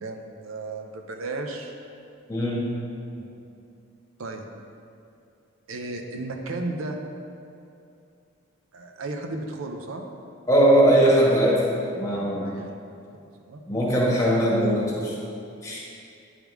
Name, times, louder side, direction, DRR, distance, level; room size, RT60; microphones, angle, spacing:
voice 1, 0.0-1.7 3.2-3.4 4.2-4.5 5.7-7.0 8.7-10.0 12.4-13.6, right 2 dB, 85° right, 3 dB, 0.6 m, -34 dB
voice 2, 2.3-2.6 10.5-11.6 11.9-12.5 13.7-15.1 15.6-15.8, right 1 dB, 15° left, -5 dB, 1.2 m, -20 dB
8.9 x 3.6 x 4.7 m, 2.5 s
head